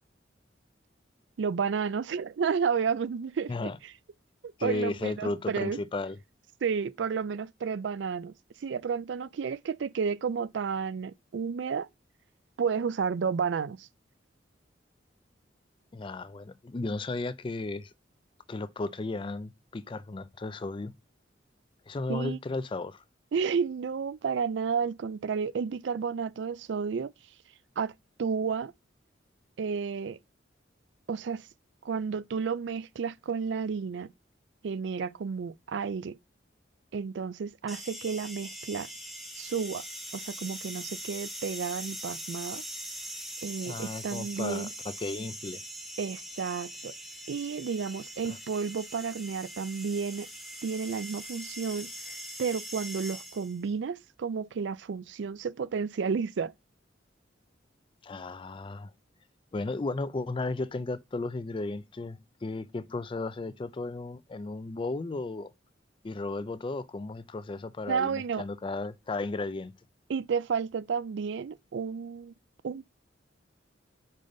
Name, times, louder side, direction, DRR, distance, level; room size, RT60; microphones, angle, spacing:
voice 1, 1.4-3.5 4.6-5.8 6.6-8.3 8.6-11.9 12.6-13.9 22.1-22.4 23.3-27.1 27.8-27.9 28.2-28.7 29.6-30.2 31.1-31.5 31.8-34.1 34.6-36.2 36.9-38.9 39.4-39.8 40.1-42.6 43.4-44.7 46.0-46.9 47.3-50.3 50.6-51.9 52.4-56.5 67.9-68.4 70.1-72.3 72.6-72.9, right 6 dB, 70° right, 0.4 m, -31 dB
voice 2, 4.6-6.2 15.9-17.9 18.5-20.9 21.9-23.0 43.7-45.6 48.2-48.4 58.0-58.9 59.5-65.5 66.0-69.7, left 3 dB, 25° left, 0.4 m, -34 dB
sound 1, 37.7-53.6, equal, ahead, 1.1 m, -42 dB
5.5 x 5.1 x 3.8 m
head